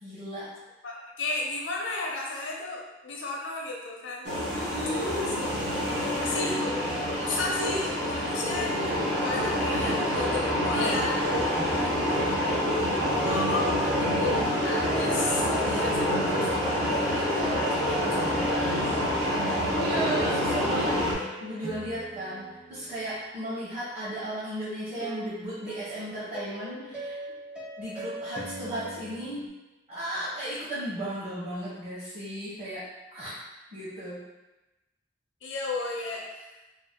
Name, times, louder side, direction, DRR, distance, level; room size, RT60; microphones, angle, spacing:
voice 1, 0.0-0.5 4.5-5.4 6.2-6.5 11.8-12.2 18.5-18.9 19.7-27.2 27.8-29.5 29.9-32.8 33.1-33.4 33.7-34.2, right 1 dB, 35° right, -11 dB, 0.9 m, -35 dB
voice 2, 0.8-4.6 6.2-6.6 7.2-12.5 13.2-18.3 18.7-19.0 35.4-36.5, left 3 dB, 80° left, -2 dB, 0.6 m, -34 dB
sound 1, 4.2-21.1, equal, 60° right, 0.7 m, -27 dB
sound 2, 10.1-16.7 17.4-23.3 25.0-29.5, right 1 dB, 5° right, 0.5 m, -40 dB
2.7 x 2.1 x 3.5 m, 1.0 s
head